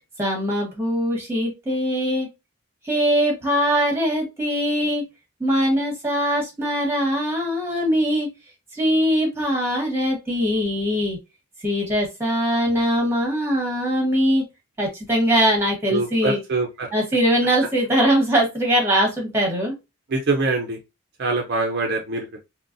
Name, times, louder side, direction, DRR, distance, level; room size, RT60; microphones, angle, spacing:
voice 1, 0.2-2.3 2.8-5.1 5.4-8.3 8.7-11.2 11.6-14.5 14.8-16.4 16.9-19.7, equal, 10° right, 1 dB, 1.2 m, -21 dB
voice 2, 15.9-16.9 20.1-20.8 21.2-22.3, right 3 dB, 50° right, 2 dB, 0.5 m, -24 dB
3.8 x 2.1 x 2.5 m, 0.24 s
head